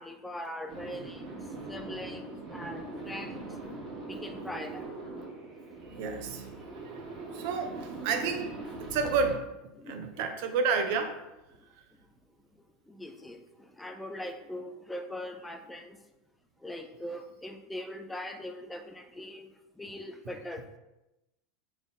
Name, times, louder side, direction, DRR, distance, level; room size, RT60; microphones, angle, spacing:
voice 1, 0.0-3.5 4.1-4.9 9.8-10.0 12.9-16.0 16.6-19.5 19.8-20.6, left 1 dB, 10° left, 5 dB, 0.4 m, -41 dB
sound 1, 0.7-9.3, right 2 dB, 35° right, 1.3 m, -41 dB
voice 2, 6.0-6.4 7.3-8.5 8.8-9.4 9.9-11.1, right 5 dB, 65° right, 6 dB, 0.5 m, -30 dB
3.8 x 2.5 x 3.4 m, 0.96 s
hypercardioid pair, 90°, 0 cm